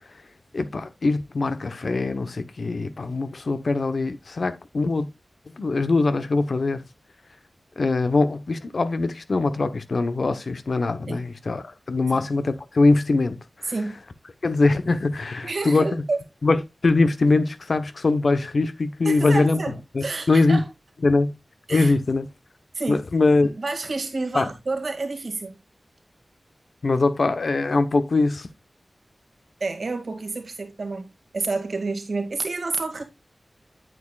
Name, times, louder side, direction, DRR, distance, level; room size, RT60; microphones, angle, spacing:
voice 1, 0.5-5.1 5.6-6.8 7.8-13.4 14.4-16.0 16.4-19.6 19.9-20.6 21.0-21.3 21.7-22.3 22.9-23.5 24.3-24.5 26.8-28.5, left 3 dB, 70° left, 1.0 m, -22 dB
voice 2, 15.4-16.2 19.0-20.7 21.7-21.9 22.7-23.0 23.4-25.6 29.6-33.0, right 3 dB, 75° right, 2.1 m, -29 dB
9.1 x 8.7 x 2.4 m
cardioid pair, 50°, 0 cm